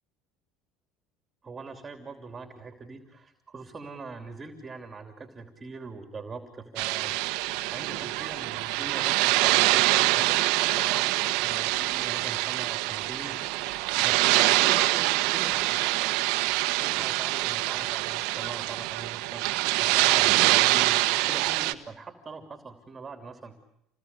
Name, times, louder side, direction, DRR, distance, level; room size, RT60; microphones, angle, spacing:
voice 1, 1.4-13.4 14.0-15.9 16.8-19.5 19.8-21.0 21.2-23.6, right 4 dB, 25° right, 5 dB, 3.1 m, -42 dB
sound 1, 6.8-21.7, right 19 dB, 70° right, 1.4 m, -25 dB
28.0 x 20.0 x 9.7 m, 0.82 s
supercardioid pair, 95°, 0 cm